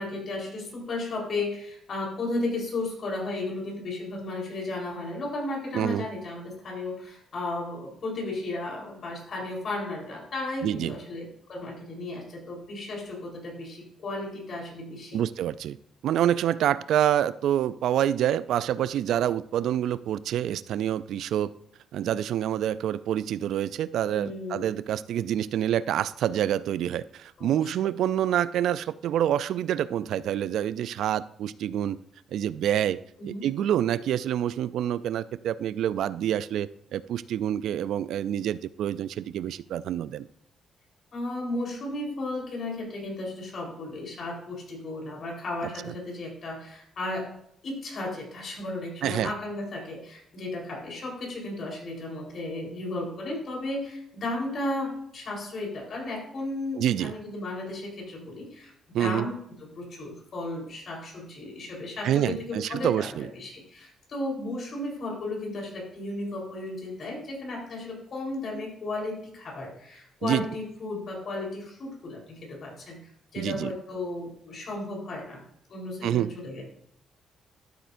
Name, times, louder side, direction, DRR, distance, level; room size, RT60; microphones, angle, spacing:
voice 1, 0.0-15.2 24.1-24.7 27.4-27.9 33.2-33.4 41.1-47.3 47.6-58.7 59.0-73.0 73.3-75.4 75.7-76.6, left 2 dB, 55° left, -1 dB, 3.9 m, -34 dB
voice 2, 5.7-6.1 10.6-11.0 15.1-15.8 16.0-21.5 21.9-32.0 32.3-40.3 49.0-49.3 56.8-57.1 58.9-59.3 62.0-63.3 70.2-70.4 73.4-73.7 76.0-76.3, right 11 dB, 75° right, 17 dB, 0.3 m, -27 dB
13.0 x 7.8 x 2.6 m, 0.73 s
cardioid pair, 90°, 0 cm